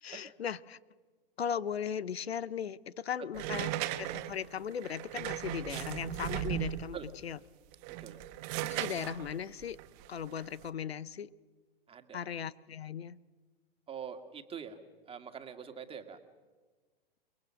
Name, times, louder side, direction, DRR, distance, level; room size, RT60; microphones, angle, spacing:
voice 1, 0.0-0.8 1.4-3.7 4.0-7.0 7.2-7.4 8.6-9.8 10.1-11.3 12.1-13.2, left 8 dB, 85° left, 20 dB, 0.8 m, -37 dB
sound 1, 3.3-7.0 7.7-10.7, right 13 dB, 40° right, 1.6 m, -37 dB
voice 2, 7.9-8.2 11.9-12.2 13.9-14.8 15.1-16.2, right 7 dB, 20° right, 7 dB, 2.1 m, -45 dB
29.5 x 22.0 x 6.4 m, 1.4 s
hypercardioid pair, 110°, 30 cm